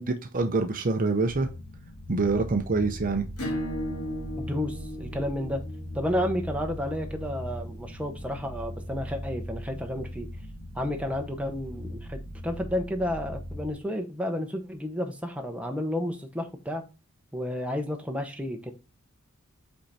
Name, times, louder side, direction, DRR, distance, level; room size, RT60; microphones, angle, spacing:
voice 1, 0.3-1.5 2.1-3.3, right 3 dB, 40° right, 0.6 m, -25 dB
sound 1, 1.2-13.7, equal, 50° left, 1.4 m, -39 dB
Acoustic guitar / Strum, 3.4-8.6, equal, 85° left, 2.0 m, -37 dB
voice 2, 4.4-5.6 5.9-10.3 10.7-16.8 17.3-18.7, left 1 dB, 5° right, 0.8 m, -31 dB
5.5 x 4.5 x 4.2 m
head